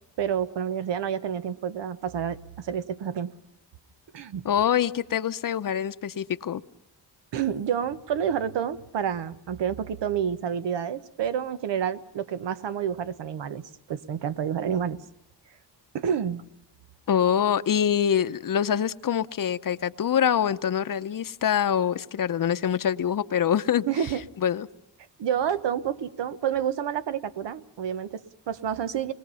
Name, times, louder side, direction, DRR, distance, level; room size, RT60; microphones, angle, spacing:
voice 1, 0.2-3.3 4.1-4.4 7.3-15.0 15.9-16.5 23.8-24.2 25.2-29.1, right 8 dB, 80° right, 13 dB, 1.2 m, -29 dB
voice 2, 4.4-6.6 17.1-23.8 24.4-24.7, left 9 dB, 50° left, 13 dB, 0.8 m, -25 dB
27.0 x 21.0 x 5.6 m, 0.81 s
cardioid pair, 105°, 42 cm